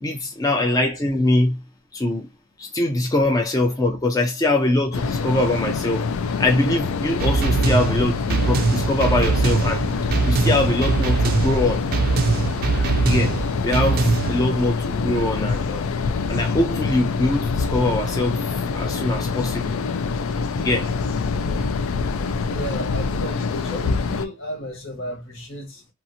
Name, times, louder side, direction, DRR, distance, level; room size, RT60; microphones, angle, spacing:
voice 1, 0.0-1.6 1.9-2.3 2.6-6.1 6.4-9.9 10.2-11.9 13.0-13.4 13.6-15.9 16.3-19.8 20.6-20.9, left 2 dB, 15° left, 0.4 m, -22 dB
sound 1, 4.9-24.3, left 4 dB, 90° left, 0.4 m, -25 dB
sound 2, 7.2-14.4, right 4 dB, 45° right, 0.4 m, -22 dB
voice 2, 22.4-25.9, equal, 70° left, 1.3 m, -33 dB
2.8 x 2.4 x 2.6 m
head